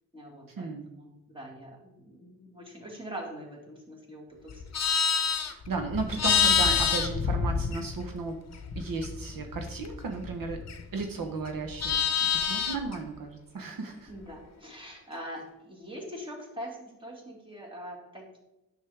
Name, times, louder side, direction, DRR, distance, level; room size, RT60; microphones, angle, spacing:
voice 1, 0.1-0.7 1.0-4.7 14.1-18.4, equal, 15° right, -1 dB, 2.0 m, -43 dB
Livestock farm animals working animals, 4.5-8.2 8.5-11.0 11.4-12.9, left 7 dB, 45° left, 0.8 m, -27 dB
voice 2, 5.4-8.4 8.8-10.6 10.9-12.0 12.3-14.1, right 4 dB, 70° right, 4 dB, 1.0 m, -34 dB
9.9 x 6.4 x 3.4 m, 0.97 s
wide cardioid pair, 130°, 36 cm